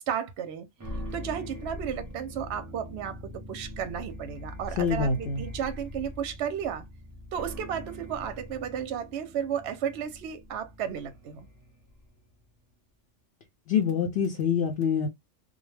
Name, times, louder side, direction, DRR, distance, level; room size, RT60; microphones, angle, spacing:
voice 1, 0.1-0.7 1.1-6.9 7.3-11.5, right 8 dB, 65° right, 0.8 m, -33 dB
sound 1, 0.8-12.2, left 1 dB, 20° right, 0.7 m, -42 dB
voice 2, 4.8-5.4 13.7-15.1, left 6 dB, 65° left, 0.7 m, -25 dB
2.3 x 2.1 x 3.1 m
omnidirectional pair, 1.3 m